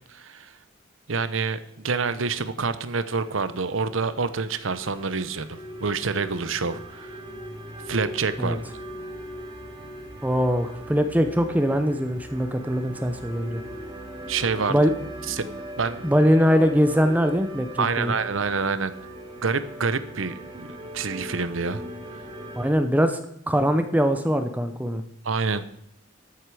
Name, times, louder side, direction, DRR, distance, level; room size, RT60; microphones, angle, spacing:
voice 1, 0.1-0.5 1.1-7.2 7.9-8.6 14.3-14.8 15.3-15.5 15.8-16.1 17.8-18.9 19.4-21.8 25.2-25.6, right 4 dB, 80° right, 13 dB, 0.9 m, -27 dB
sound 1, 3.1-22.7, right 1 dB, 25° right, 2.9 m, -40 dB
voice 2, 10.2-13.6 14.7-14.9 16.0-18.1 22.6-23.2 23.5-25.0, equal, 10° right, 8 dB, 0.7 m, -22 dB
13.5 x 7.9 x 4.9 m, 0.77 s
head